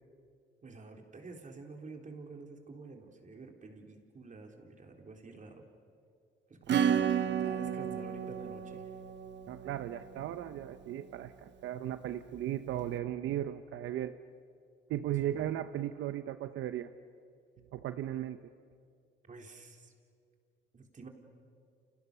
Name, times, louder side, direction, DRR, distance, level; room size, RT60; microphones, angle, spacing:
voice 1, 0.6-5.7 6.5-7.1 7.4-8.9 15.2-15.5 19.3-19.9 20.7-21.1, right 3 dB, 40° right, 3 dB, 3.9 m, -49 dB
Acoustic guitar / Strum, 6.7-11.0, right 8 dB, 65° right, 1.1 m, -33 dB
voice 2, 9.5-14.1 14.9-16.9 17.7-18.4, right 12 dB, 80° right, 11 dB, 0.8 m, -36 dB
29.5 x 29.5 x 6.8 m, 2.3 s
cardioid pair, 90°, 20 cm